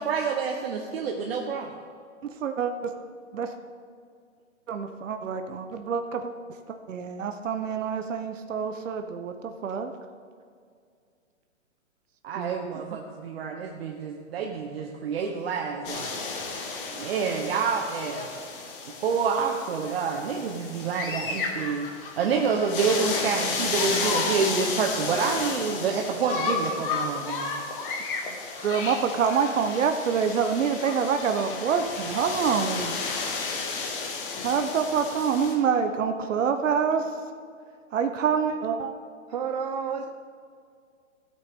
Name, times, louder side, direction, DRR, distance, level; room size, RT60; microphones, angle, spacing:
voice 1, 0.0-1.7 12.2-16.2 16.9-18.3 19.0-21.9 22.2-27.5, right 5 dB, 50° right, 1 dB, 1.1 m, -28 dB
voice 2, 2.2-2.7 3.3-3.5 4.7-6.3 6.7-9.3 9.6-9.9 12.4-12.8 28.6-33.0 34.4-37.1 37.9-38.9, right 6 dB, 75° right, 7 dB, 1.0 m, -26 dB
sound 1, 15.8-35.5, left 4 dB, 45° left, 2.0 m, -32 dB
voice 3, 39.3-40.1, right 6 dB, 35° right, 5 dB, 0.5 m, -30 dB
15.5 x 8.6 x 3.7 m, 2.2 s
hypercardioid pair, 150°, 38 cm